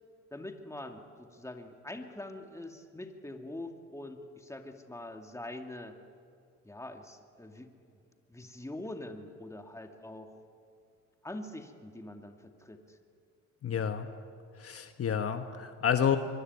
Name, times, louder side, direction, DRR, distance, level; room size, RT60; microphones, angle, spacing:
voice 1, 0.3-6.0 6.6-8.0 8.3-10.4 11.2-13.0, left 1 dB, 10° left, 4 dB, 2.4 m, -44 dB
voice 2, 13.6-14.1 14.6-16.2, left 8 dB, 50° left, 7 dB, 1.3 m, -29 dB
23.5 x 23.0 x 9.7 m, 2.4 s
cardioid pair, 90°, 30 cm